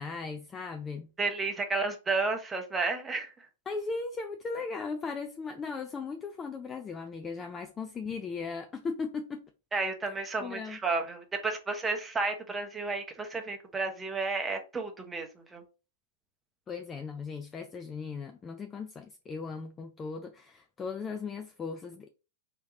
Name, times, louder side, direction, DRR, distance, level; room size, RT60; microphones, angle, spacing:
voice 1, 0.0-1.1 3.7-9.4 10.4-10.8 16.7-22.1, left 4 dB, 20° left, 0.4 m, -37 dB
voice 2, 1.2-3.3 9.7-15.6, right 3 dB, 15° right, 0.9 m, -32 dB
3.3 x 2.9 x 3.7 m
hypercardioid pair, 125°, 0 cm